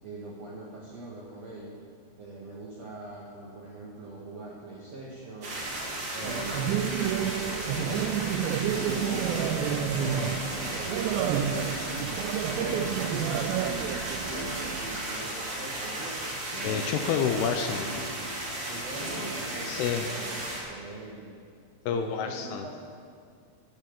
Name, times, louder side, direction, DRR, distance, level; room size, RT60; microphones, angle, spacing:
voice 1, 0.0-1.8 2.2-5.5 6.1-11.5 12.1-13.9 14.3-16.3 18.7-21.3 21.9-22.7, right 2 dB, 65° right, -5 dB, 1.6 m, -43 dB
sound 1, 5.4-20.6, right 1 dB, 40° right, 1.9 m, -35 dB
sound 2, 6.2-6.9 7.7-8.4 8.7-9.4 10.0-10.7 11.3-12.1 12.5-13.0 14.2-14.8 16.5-17.2 17.7-18.2 19.0-19.6, equal, 40° left, 2.2 m, -40 dB
sound 3, 6.2-15.1, right 9 dB, 85° right, 2.7 m, -30 dB
voice 2, 16.6-17.9 19.7-20.1 21.9-22.7, left 7 dB, 80° left, 6 dB, 2.4 m, -29 dB
10.0 x 9.3 x 6.9 m, 2.1 s
omnidirectional pair, 5.0 m